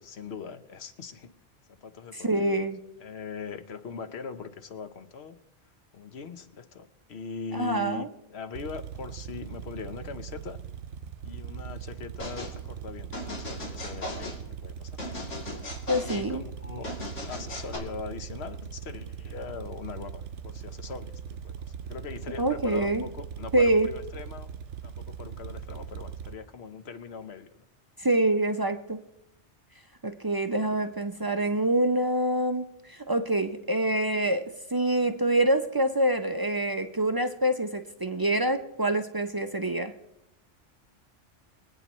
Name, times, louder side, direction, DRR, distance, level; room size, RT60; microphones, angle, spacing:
voice 1, 0.0-1.3 1.8-2.6 3.0-5.4 5.9-10.6 11.2-14.3 14.6-15.0 16.0-16.9 17.2-21.5 21.8-24.5 24.8-27.7, left 5 dB, 65° left, 10 dB, 1.1 m, -41 dB
voice 2, 2.1-2.8 7.5-8.1 15.9-16.4 22.4-23.0 23.5-23.9 28.0-29.0 30.0-39.9, right 1 dB, 35° right, 7 dB, 0.4 m, -26 dB
sound 1, 8.5-26.3, right 8 dB, 75° right, 0.9 m, -40 dB
sound 2, 12.2-12.5 13.1-14.4 15.0-16.3 16.8-17.8, left 2 dB, 80° left, 3.1 m, -37 dB
24.0 x 9.0 x 3.1 m, 0.83 s
omnidirectional pair, 1.2 m